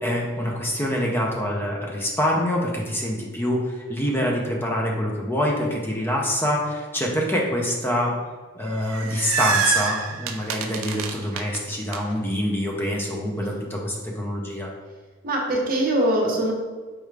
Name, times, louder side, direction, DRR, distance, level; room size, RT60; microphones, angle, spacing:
voice 1, 0.0-8.1 8.6-14.7, equal, 10° left, -1 dB, 0.4 m, -25 dB
sound 1, 8.7-12.0, right 6 dB, 80° right, 0.4 m, -27 dB
voice 2, 15.2-16.5, right 1 dB, 45° right, -1 dB, 0.7 m, -22 dB
4.7 x 2.3 x 3.2 m, 1.4 s
head